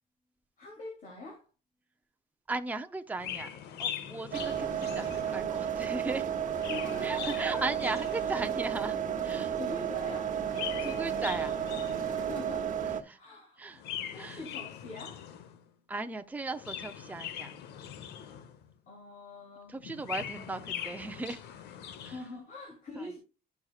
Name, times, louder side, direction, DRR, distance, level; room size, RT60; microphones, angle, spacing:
voice 1, 0.6-1.4 6.7-7.8 8.3-8.4 9.2-10.4 12.1-12.8 13.1-13.6 14.1-15.3 18.9-19.8 20.4-20.7 22.0-23.2, left 2 dB, 55° left, 2.8 m, -44 dB
voice 2, 2.5-3.5 3.8-6.3 7.0-9.0 9.2-9.5 10.8-11.5 13.6-13.8 14.2-14.4 15.9-17.5 19.7-21.4 22.0-22.1, right 3 dB, 10° right, 0.6 m, -36 dB
Chirp tweet, 3.2-5.6 6.3-8.8 10.3-12.5 13.7-15.6 16.4-18.7 19.8-22.3, left 10 dB, 80° left, 1.0 m, -42 dB
sound 1, 4.3-13.0, right 8 dB, 50° right, 1.1 m, -32 dB
11.0 x 6.3 x 2.4 m
cardioid pair, 110°, 17 cm